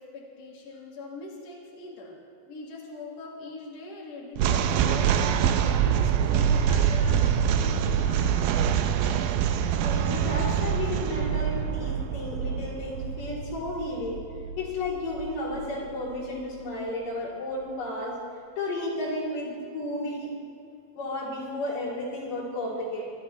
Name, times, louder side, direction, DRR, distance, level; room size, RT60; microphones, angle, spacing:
voice 1, 0.0-2.2 2.5-5.2 5.6-8.7, left 3 dB, 35° left, -3 dB, 1.8 m, -41 dB
sound 1, 4.4-15.7, right 8 dB, 80° right, 2.2 m, -25 dB
voice 2, 9.8-14.2 14.6-18.2 18.6-20.3 20.9-23.1, left 2 dB, 60° left, -6 dB, 5.0 m, -33 dB
25.0 x 11.5 x 3.3 m, 2.5 s
omnidirectional pair, 4.3 m